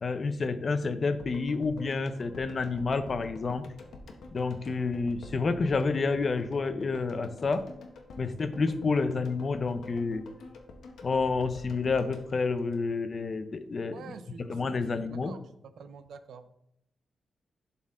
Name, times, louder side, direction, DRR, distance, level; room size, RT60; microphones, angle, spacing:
voice 1, 0.0-3.6 4.3-7.6 8.2-10.2 11.0-15.4, left 4 dB, 35° left, 11 dB, 0.5 m, -29 dB
sound 1, 1.2-13.4 13.7-13.8, left 3 dB, 75° left, 1.0 m, -48 dB
voice 2, 13.9-15.4 15.8-16.6, right 6 dB, 75° right, 11 dB, 0.6 m, -47 dB
11.0 x 4.2 x 3.6 m, 0.78 s
wide cardioid pair, 180°, 0 cm